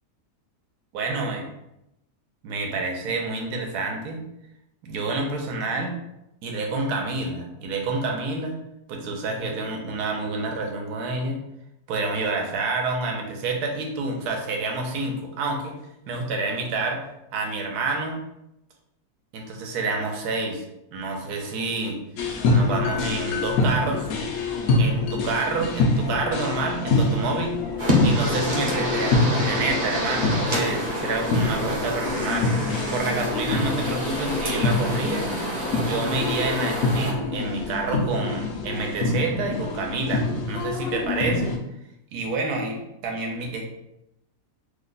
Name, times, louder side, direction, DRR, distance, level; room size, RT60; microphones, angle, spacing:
voice 1, 0.9-1.5 2.4-4.2 4.8-6.0 6.4-8.6 8.9-11.4 11.9-15.8 16.1-17.0 17.3-18.2 19.3-20.6 20.9-22.0 22.5-24.1 24.8-27.5 28.0-32.5 32.9-35.3 35.8-41.5 42.1-43.6, right 3 dB, 75° right, 1 dB, 1.2 m, -28 dB
sound 1, 22.2-41.6, left 3 dB, 70° left, 1.0 m, -26 dB
sound 2, 27.8-37.1, equal, 35° right, 0.7 m, -28 dB
3.1 x 2.2 x 3.8 m, 0.85 s
omnidirectional pair, 1.7 m